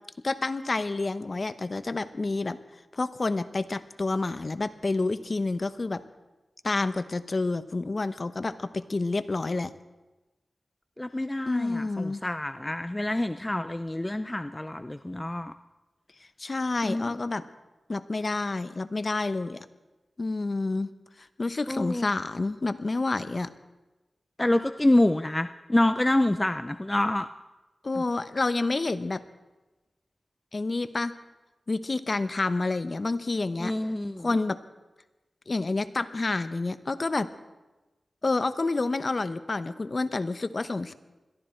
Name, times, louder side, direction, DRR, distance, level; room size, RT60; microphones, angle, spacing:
voice 1, 0.2-2.6 2.9-6.0 6.6-9.7 11.4-12.2 16.4-17.4 17.9-19.7 20.2-20.9 21.2-23.5 27.8-29.2 30.5-31.1 31.7-33.7 34.2-34.6 35.5-37.3 38.2-40.9, left 3 dB, 45° left, 12 dB, 0.9 m, -29 dB
voice 2, 11.0-15.5 16.8-17.2 21.7-22.1 24.4-27.3 33.6-34.3, left 1 dB, 20° left, 10 dB, 0.5 m, -27 dB
21.5 x 14.0 x 4.5 m, 1.1 s
wide cardioid pair, 75°, 0 cm